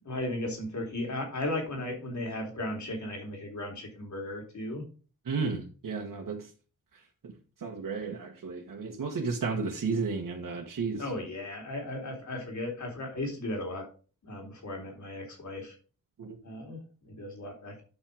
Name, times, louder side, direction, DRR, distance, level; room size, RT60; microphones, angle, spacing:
voice 1, 0.1-4.8 11.0-13.9 14.2-15.8 16.4-17.8, left 1 dB, 60° left, 2 dB, 3.6 m, -36 dB
voice 2, 5.3-6.5 7.2-7.3 7.6-11.0 16.2-16.4, right 4 dB, 75° right, 0 dB, 1.7 m, -33 dB
9.5 x 6.1 x 5.0 m, 0.36 s
wide cardioid pair, 115°, 32 cm